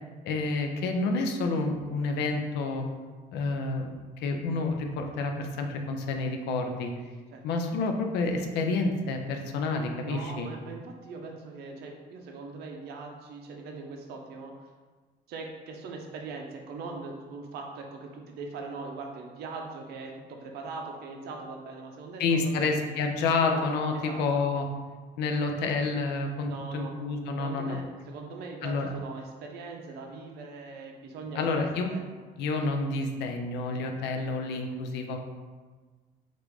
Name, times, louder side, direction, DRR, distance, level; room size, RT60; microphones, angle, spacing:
voice 1, 0.2-2.8 3.3-6.9 7.4-10.5 22.2-24.7 25.2-27.8 28.6-28.9 31.3-31.9 32.4-35.2, left 3 dB, 85° left, 4 dB, 0.5 m, -29 dB
voice 2, 10.0-14.5 15.3-22.7 23.4-23.6 23.9-24.2 26.4-26.9 27.4-32.0, right 3 dB, 70° right, 2 dB, 0.5 m, -41 dB
3.5 x 2.5 x 3.0 m, 1.4 s
cardioid pair, 110°, 17 cm